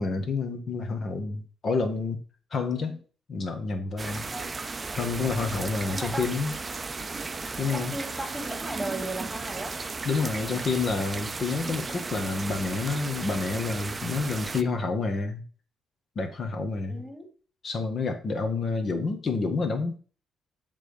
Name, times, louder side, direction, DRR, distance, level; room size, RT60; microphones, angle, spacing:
voice 1, 0.0-2.2 2.5-3.0 3.3-4.3 5.0-6.6 7.6-7.9 10.0-15.4 16.1-17.0 17.6-20.0, left 4 dB, 50° left, 6 dB, 1.5 m, -29 dB
sound 1, 4.0-14.6, right 3 dB, 30° right, 0.5 m, -35 dB
voice 2, 5.9-6.5 7.7-9.8 16.9-17.3, right 1 dB, 5° right, 4 dB, 2.3 m, -36 dB
7.6 x 3.7 x 5.1 m, 0.40 s
cardioid pair, 90°, 0 cm